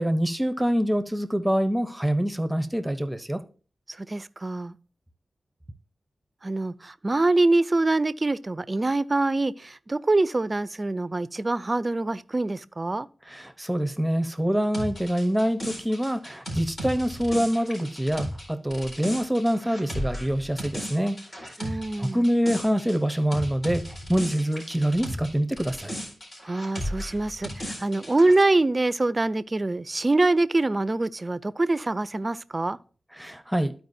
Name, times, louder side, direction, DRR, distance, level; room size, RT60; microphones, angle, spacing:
voice 1, 0.0-3.4 13.3-21.5 22.0-26.0 33.2-33.7, equal, 10° right, 0.9 m, -25 dB
voice 2, 3.9-4.7 6.4-13.1 21.6-22.2 26.4-32.8, right 2 dB, 40° right, 0.5 m, -24 dB
sound 1, 14.7-25.3 25.6-28.4, equal, 60° left, 4.0 m, -35 dB
14.0 x 4.6 x 2.7 m
cardioid pair, 40°, 0 cm